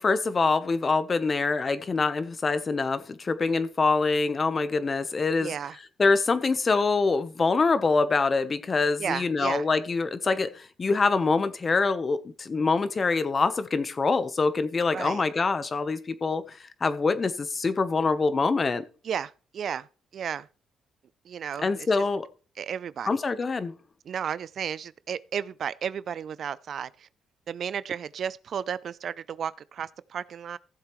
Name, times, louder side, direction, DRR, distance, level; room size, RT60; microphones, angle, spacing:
voice 1, 0.0-5.5 6.0-18.8 21.6-22.3 23.1-23.7, left 4 dB, 35° left, 0.9 m, -25 dB
voice 2, 5.4-5.8 9.0-9.7 14.9-15.2 19.0-19.9 20.1-20.5 21.2-21.9 22.6-23.1 24.0-27.1 27.5-30.6, right 8 dB, 60° right, 0.4 m, -33 dB
15.5 x 7.3 x 3.1 m
cardioid pair, 90°, 0 cm